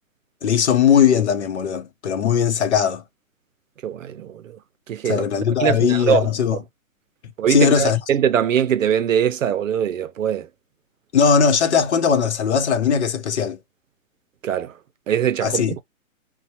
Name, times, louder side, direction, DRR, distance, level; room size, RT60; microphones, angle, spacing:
voice 1, 0.4-3.0 5.0-6.6 7.5-8.0 11.1-13.6 15.4-15.7, left 7 dB, 50° left, 0.8 m, -19 dB
voice 2, 3.8-4.6 4.9-5.3 5.6-6.6 7.4-10.5 14.4-14.7 15.1-15.6, right 9 dB, 65° right, 0.6 m, -22 dB
4.1 x 2.3 x 2.8 m
hypercardioid pair, 165°, 42 cm